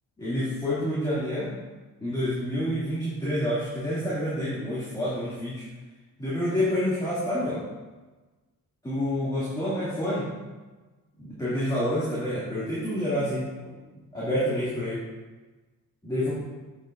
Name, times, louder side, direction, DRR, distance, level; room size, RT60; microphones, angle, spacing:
voice 1, 0.2-1.6 2.0-5.6 6.2-7.6 8.8-10.3 11.2-13.7 14.1-15.0 16.0-16.3, left 1 dB, 10° left, -11 dB, 2.4 m, -28 dB
8.5 x 7.4 x 2.6 m, 1.2 s
cardioid pair, 120°, 37 cm